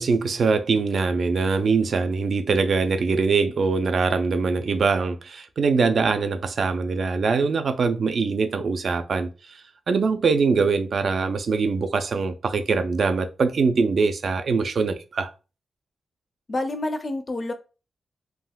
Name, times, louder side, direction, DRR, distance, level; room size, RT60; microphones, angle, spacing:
voice 1, 0.0-9.6 9.9-15.3, right 4 dB, 50° right, 0.3 m, -23 dB
voice 2, 16.5-17.5, left 2 dB, 30° left, 0.4 m, -28 dB
3.4 x 2.3 x 2.2 m
wide cardioid pair, 175°, 0 cm